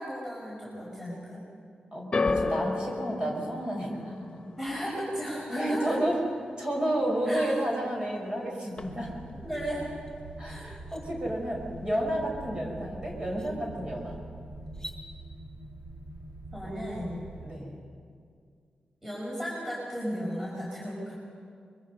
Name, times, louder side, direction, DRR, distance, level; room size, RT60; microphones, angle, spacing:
voice 1, 0.0-1.4 4.6-6.0 7.3-7.6 9.4-9.8 10.5-10.7 16.5-17.3 19.0-21.1, equal, 10° right, -6 dB, 5.9 m, -35 dB
voice 2, 1.9-4.4 5.5-6.2 6.6-9.1 10.4-14.2 17.4-17.8, right 1 dB, 35° right, -1 dB, 5.5 m, -31 dB
sound 1, 2.1-8.4 8.7-9.3 10.1-10.2, left 3 dB, 35° left, 1.4 m, -35 dB
sound 2, 8.7-17.5, right 1 dB, 75° right, 2.7 m, -44 dB
sound 3, 10.1-10.2 10.6-11.0 12.7-12.8 13.3-13.5 14.7-15.0, equal, 20° left, 3.3 m, -45 dB
25.0 x 23.0 x 5.5 m, 2.2 s
wide cardioid pair, 90°, 3 cm